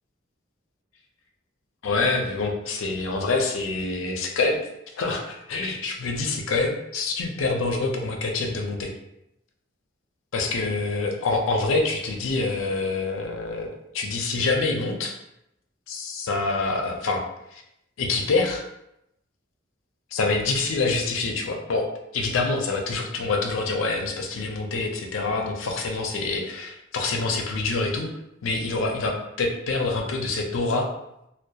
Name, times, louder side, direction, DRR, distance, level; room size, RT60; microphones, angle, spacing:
voice 1, 1.8-4.6 4.9-8.9 10.3-13.7 13.9-15.1 15.9-17.2 17.5-17.6 18.0-18.6 20.1-28.1 28.4-30.9, left 3 dB, 80° left, 2 dB, 0.4 m, -26 dB
2.7 x 2.1 x 2.3 m, 0.83 s
head